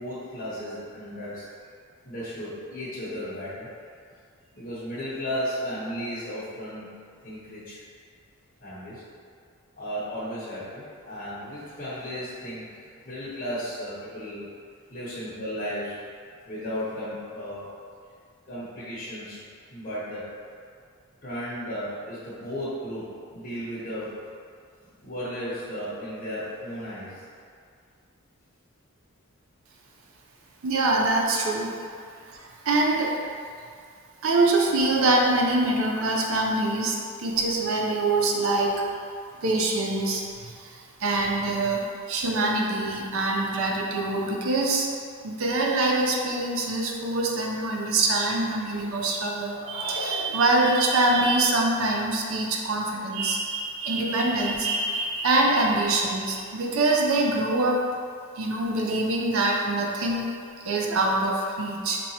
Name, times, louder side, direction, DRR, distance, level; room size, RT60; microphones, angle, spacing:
voice 1, 0.0-1.5 2.0-3.7 4.5-7.0 7.2-7.8 8.6-9.0 9.8-14.5 14.9-16.0 16.5-17.7 18.5-19.4 19.7-20.3 21.2-24.1 25.0-27.2, equal, 35° left, -11 dB, 0.9 m, -34 dB
voice 2, 30.6-31.7 32.7-33.2 34.2-38.8 39.4-40.5 41.0-41.8 42.1-44.9 45.2-57.8 58.4-60.3 60.7-62.0, right 2 dB, 65° right, -1 dB, 0.5 m, -24 dB
sound 1, 49.4-51.1, left 3 dB, 55° left, 0.3 m, -38 dB
4.5 x 2.9 x 2.8 m, 2.2 s
head